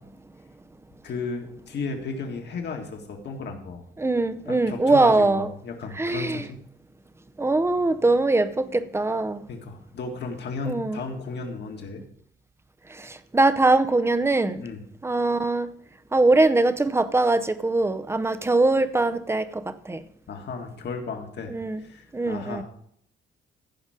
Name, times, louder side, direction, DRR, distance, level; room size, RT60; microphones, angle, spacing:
voice 1, 1.0-3.8 4.5-6.6 9.5-12.0 14.6-14.8 20.3-22.6, left 4 dB, 60° left, 2.0 m, -34 dB
voice 2, 4.0-5.5 6.0-6.4 7.4-9.4 10.7-11.0 13.0-14.6 15.0-15.7 16.1-20.0 21.5-21.8 22.1-22.6, right 2 dB, 15° right, 0.7 m, -22 dB
15.0 x 5.2 x 5.1 m
cardioid pair, 90°, 20 cm